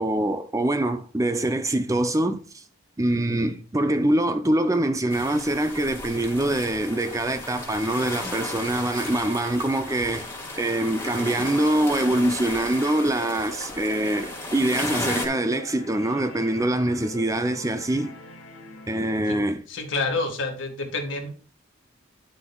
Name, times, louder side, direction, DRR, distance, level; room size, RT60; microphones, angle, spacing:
voice 1, 0.0-2.6 3.0-10.2 10.6-18.1 18.9-19.7, right 1 dB, 15° right, 0.5 m, -24 dB
sound 1, 5.1-15.3, left 2 dB, 15° left, 1.8 m, -34 dB
sound 2, 8.3-19.4, left 1 dB, 80° left, 2.1 m, -44 dB
voice 2, 19.7-21.3, left 3 dB, 65° left, 1.6 m, -28 dB
9.9 x 8.6 x 2.4 m
head